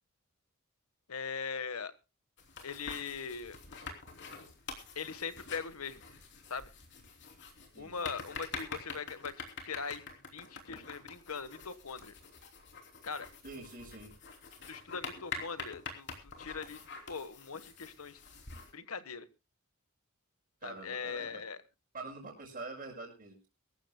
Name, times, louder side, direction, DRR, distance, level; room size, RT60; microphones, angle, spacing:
voice 1, 1.1-1.9 2.6-3.6 4.9-6.0 6.5-6.7 7.8-9.3 9.6-12.2 13.0-13.3 14.7-18.2 18.7-19.3 20.6-21.6, left 5 dB, 85° left, 12 dB, 1.3 m, -41 dB
sound 1, 2.4-18.7, left 4 dB, 55° left, 3.2 m, -46 dB
voice 2, 7.7-8.1 13.4-14.1 20.6-21.4 21.9-23.5, right 3 dB, 40° right, -6 dB, 5.5 m, -45 dB
24.0 x 14.0 x 2.2 m, 0.29 s
head